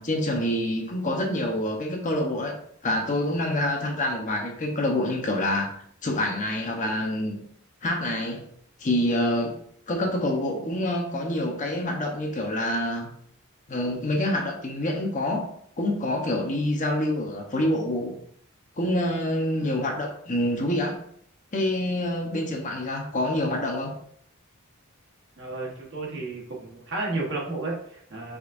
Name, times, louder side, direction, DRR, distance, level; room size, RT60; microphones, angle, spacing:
voice 1, 0.0-2.6 2.8-5.7 6.0-7.4 7.8-8.5 8.8-9.6 9.9-13.1 13.7-15.5 15.8-18.1 18.8-21.0 21.5-23.9, left 1 dB, 35° left, 1 dB, 0.8 m, -26 dB
voice 2, 25.4-28.4, right 2 dB, 55° right, -2 dB, 1.2 m, -32 dB
5.1 x 3.6 x 2.5 m, 0.63 s
head